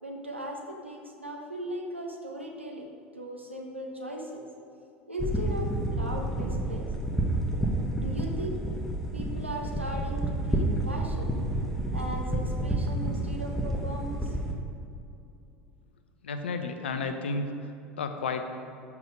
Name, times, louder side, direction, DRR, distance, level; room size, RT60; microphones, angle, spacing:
voice 1, 0.0-2.9 3.1-4.4 5.1-6.9 7.9-8.6 9.1-11.4 11.9-14.4, equal, 90° right, 0 dB, 1.3 m, -38 dB
sound 1, 5.2-14.5, right 1 dB, 5° left, 1.6 m, -30 dB
voice 2, 16.2-17.5 18.0-18.4, left 4 dB, 70° left, 7 dB, 0.8 m, -31 dB
13.0 x 6.1 x 4.9 m, 2.7 s
figure-of-eight pair, 70°, 6 cm